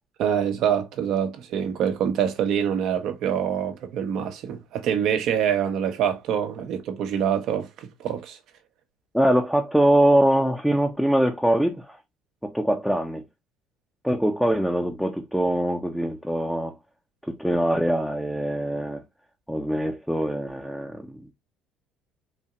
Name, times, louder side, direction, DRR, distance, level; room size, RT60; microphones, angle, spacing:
voice 1, 0.2-8.4, right 8 dB, 65° right, 1.0 m, -25 dB
voice 2, 9.1-12.0 12.5-13.2 14.0-16.7 17.2-19.0 19.5-21.3, right 1 dB, ahead, 0.8 m, -23 dB
4.3 x 2.8 x 2.4 m
supercardioid pair, 75°, 0 cm